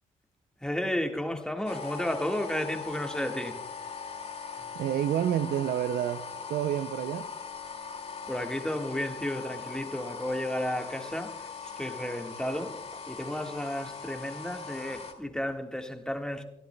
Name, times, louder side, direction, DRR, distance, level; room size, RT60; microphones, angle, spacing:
voice 1, 0.6-3.6 4.6-4.7 8.2-11.5 11.8-16.4, left 1 dB, 5° left, 1.6 m, -33 dB
sound 1, 1.6-15.1, left 6 dB, 40° left, 2.3 m, -40 dB
voice 2, 4.8-7.3, right 10 dB, 75° right, 0.4 m, -29 dB
25.0 x 10.5 x 2.2 m
supercardioid pair, 55°, 16 cm